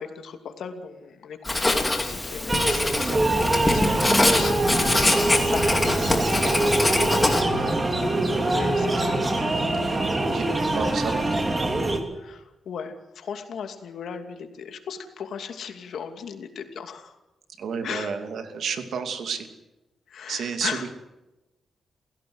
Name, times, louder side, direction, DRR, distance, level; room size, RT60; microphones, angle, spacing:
voice 1, 0.0-6.4 6.7-7.6 8.0-8.1 8.4-9.2 12.1-17.2 17.8-18.1 20.1-20.9, left 6 dB, 80° left, 6 dB, 2.7 m, -37 dB
Writing, 1.4-7.4, left 2 dB, 15° left, 2.7 m, -24 dB
sound 1, 2.5-12.0, right 2 dB, 20° right, 2.9 m, -24 dB
voice 2, 6.1-6.4 9.8-10.0 10.3-10.5 10.7-11.2 17.6-19.5 20.3-20.9, right 6 dB, 75° right, 7 dB, 2.7 m, -31 dB
29.0 x 16.5 x 8.0 m, 1.0 s
wide cardioid pair, 165°, 0 cm